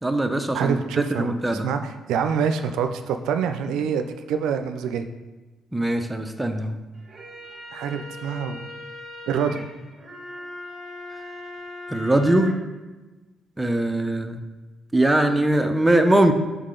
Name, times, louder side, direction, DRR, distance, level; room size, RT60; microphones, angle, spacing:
voice 1, 0.0-1.7 5.7-6.8 11.9-12.5 13.6-14.4 14.9-16.3, right 1 dB, 10° right, 6 dB, 0.6 m, -21 dB
voice 2, 0.5-5.0 7.7-8.6 9.3-9.6, right 7 dB, 90° right, 7 dB, 0.4 m, -26 dB
sound 1, 6.9-12.5, left 1 dB, 30° right, 1.4 m, -39 dB
6.5 x 4.1 x 3.8 m, 1.2 s
cardioid pair, 90°, 0 cm